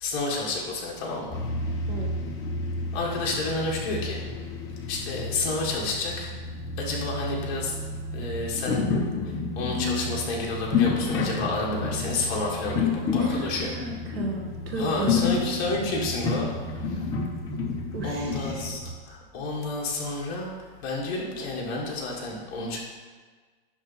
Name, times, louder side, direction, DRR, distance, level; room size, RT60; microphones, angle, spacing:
voice 1, 0.0-1.4 2.9-4.2 4.9-6.3 6.8-7.8 8.1-8.9 9.5-13.7 14.8-17.0 18.0-22.8, left 2 dB, 30° left, -3 dB, 1.6 m, -30 dB
sound 1, 1.3-18.8, left 4 dB, 10° left, 0.6 m, -30 dB
voice 2, 13.0-15.5 17.9-18.7, right 2 dB, 70° right, 0 dB, 1.8 m, -34 dB
10.5 x 3.6 x 5.7 m, 1.4 s
supercardioid pair, 175°, 31 cm